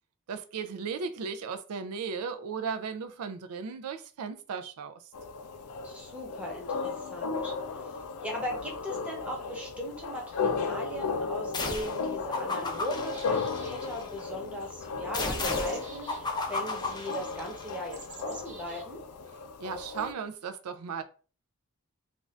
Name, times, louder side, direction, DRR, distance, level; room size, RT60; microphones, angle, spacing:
voice 1, 0.3-5.0 19.6-21.0, right 5 dB, 75° right, 0.4 m, -36 dB
sound 1, 5.1-20.1, left 4 dB, 75° left, 0.4 m, -35 dB
voice 2, 5.8-7.5 7.8-19.0, equal, 5° right, 0.9 m, -39 dB
sound 2, 11.5-12.0 12.3-14.1 15.1-17.7, left 3 dB, 20° left, 0.5 m, -34 dB
sound 3, 13.1-14.0 15.1-16.2 17.1-17.2 17.9-18.8 20.0-20.1, right 4 dB, 35° right, 0.6 m, -49 dB
2.5 x 2.4 x 3.2 m
head